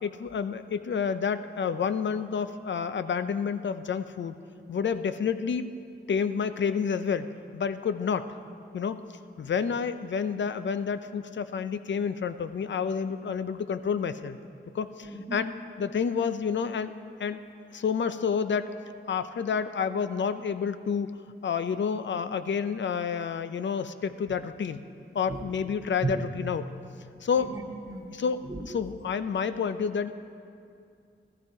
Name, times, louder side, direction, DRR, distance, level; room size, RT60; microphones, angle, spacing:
voice 1, 0.0-4.4 4.7-5.7 6.1-8.3 8.7-9.0 9.4-14.4 14.7-15.5 15.8-16.9 17.2-17.4 17.7-18.7 19.1-21.1 21.4-24.8 25.1-26.7 27.2-27.5 28.1-30.1, left 6 dB, 65° left, 11 dB, 0.6 m, -29 dB
voice 2, 15.0-15.4 25.3-25.4 26.0-26.1 27.3-28.1 28.4-28.6, right 3 dB, 15° right, -1 dB, 2.4 m, -35 dB
16.5 x 14.0 x 4.8 m, 2.4 s
cardioid pair, 80°, 21 cm